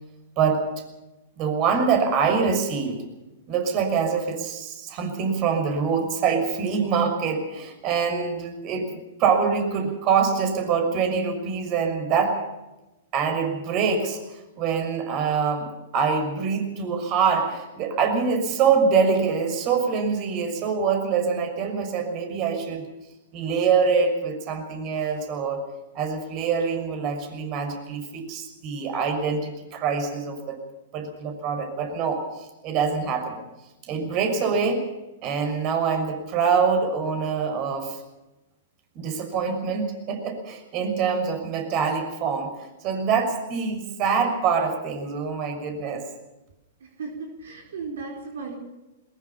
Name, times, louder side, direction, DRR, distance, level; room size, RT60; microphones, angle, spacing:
voice 1, 1.4-3.0 3.5-12.4 13.1-22.9 23.3-25.6 25.9-30.6 30.9-33.4 33.8-34.8 35.2-38.0 38.9-46.0, right 5 dB, 40° right, 6 dB, 6.1 m, -25 dB
voice 2, 46.8-48.6, right 4 dB, 70° right, 3 dB, 4.6 m, -36 dB
21.5 x 21.5 x 5.7 m, 1.0 s
hypercardioid pair, 110°, 0 cm